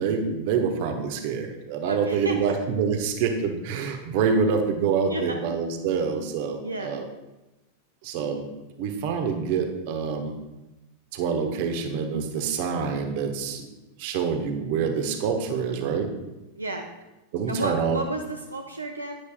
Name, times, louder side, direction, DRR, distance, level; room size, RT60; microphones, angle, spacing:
voice 1, 0.0-7.1 8.0-8.5 8.8-10.3 11.1-13.7 14.0-16.1 17.3-18.0, right 6 dB, 50° right, 5 dB, 1.2 m, -26 dB
voice 2, 1.9-2.3 5.1-5.4 6.6-7.0 16.5-16.9 17.5-19.1, right 2 dB, 80° right, 3 dB, 0.6 m, -31 dB
11.0 x 9.7 x 2.4 m, 1.0 s
figure-of-eight pair, 90°, 0 cm